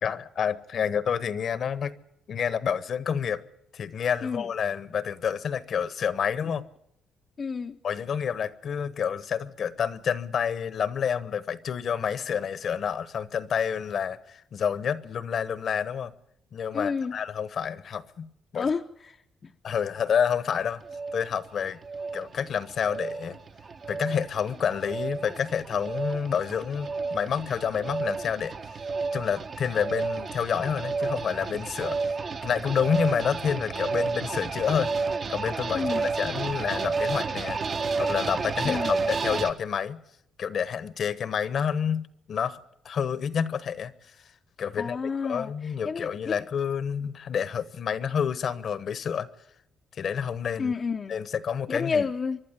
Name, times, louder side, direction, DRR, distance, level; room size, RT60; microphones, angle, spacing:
voice 1, 0.0-1.9 2.3-3.4 3.7-6.7 7.8-16.1 16.5-18.7 19.6-20.8 21.1-21.8 22.1-23.4 23.9-28.5 29.1-32.2 32.4-34.9 35.3-37.6 38.0-40.0 40.4-42.6 42.8-43.9 44.6-45.0 45.2-49.3 49.9-50.7 51.1-52.1, left 7 dB, 60° left, 1.0 m, -29 dB
voice 2, 7.4-7.8 16.7-17.2 18.6-19.2 19.4-19.5 35.7-36.1 38.6-39.1 44.8-45.5 45.8-46.3 50.6-51.2 51.7-52.4, left 5 dB, 40° left, 0.7 m, -30 dB
sound 1, 20.5-39.5, right 4 dB, 45° right, 1.3 m, -31 dB
25.0 x 11.5 x 9.8 m
cardioid pair, 90°, 0 cm